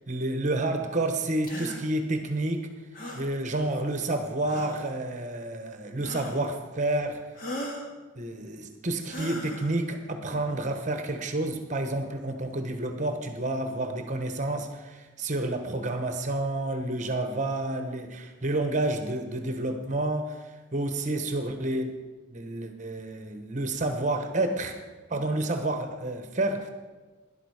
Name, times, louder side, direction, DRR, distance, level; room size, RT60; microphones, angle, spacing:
voice 1, 0.1-2.7 3.1-7.2 8.2-22.0 22.3-24.8 25.1-26.7, right 2 dB, 40° right, 6 dB, 1.1 m, -29 dB
sound 1, 1.4-1.8 2.9-3.3 4.4-4.9 6.0-6.5 7.3-7.9 9.1-9.7, equal, 45° left, 1.9 m, -38 dB
12.5 x 11.0 x 4.9 m, 1.3 s
head